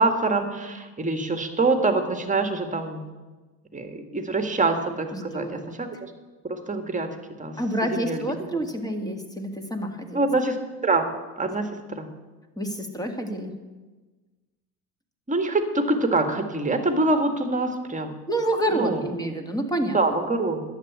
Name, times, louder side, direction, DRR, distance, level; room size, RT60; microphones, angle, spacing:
voice 1, 0.0-3.1 3.7-6.1 6.4-8.2 8.5-8.6 10.1-10.6 10.8-11.1 11.4-12.1 15.3-18.2 18.7-19.0 19.9-20.6, right 3 dB, 15° right, 6 dB, 1.8 m, -25 dB
voice 2, 5.1-5.8 7.6-10.3 12.6-13.5 18.3-20.0, right 1 dB, 10° left, 4 dB, 2.0 m, -28 dB
11.5 x 8.1 x 8.2 m, 1.3 s
hypercardioid pair, 80°, 47 cm